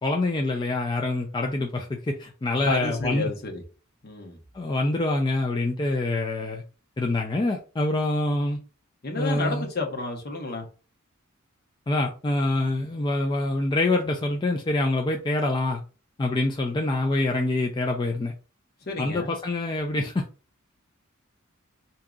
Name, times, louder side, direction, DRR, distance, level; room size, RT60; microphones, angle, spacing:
voice 1, 0.0-3.3 4.5-6.6 7.0-8.6 9.2-9.7 11.9-15.8 16.2-18.3 19.0-20.2, left 2 dB, 20° left, 0.4 m, -25 dB
voice 2, 2.6-3.5 4.0-4.4 9.0-10.6 18.9-19.3, left 3 dB, 50° left, 1.0 m, -30 dB
4.8 x 2.8 x 2.4 m
head